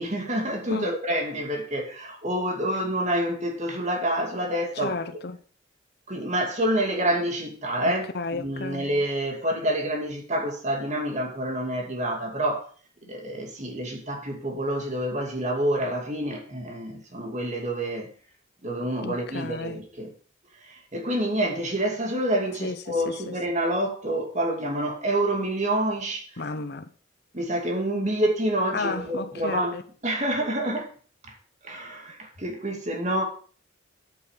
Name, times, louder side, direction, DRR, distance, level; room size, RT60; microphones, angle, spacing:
voice 1, 0.0-4.9 6.1-8.1 8.3-12.7 13.1-18.1 18.6-20.1 20.6-26.4 27.3-29.8 30.0-30.9 31.2-31.4 31.6-33.2, right 1 dB, 35° right, 2.4 m, -27 dB
voice 2, 4.8-5.4 7.8-8.8 19.0-19.8 22.6-23.3 26.4-26.9 28.7-29.8, left 3 dB, 55° left, 0.9 m, -33 dB
9.4 x 8.7 x 5.1 m
head